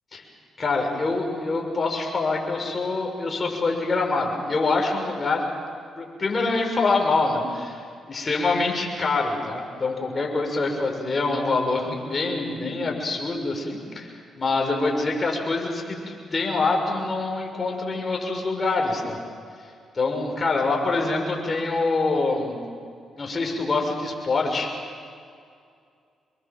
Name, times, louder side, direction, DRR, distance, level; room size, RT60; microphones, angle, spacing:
voice 1, 0.6-5.4 6.0-14.1 14.4-19.2 19.9-22.6 23.2-24.7, left 3 dB, 40° left, 2 dB, 6.4 m, -25 dB
26.5 x 22.0 x 7.7 m, 2.3 s
supercardioid pair, 50°, 0 cm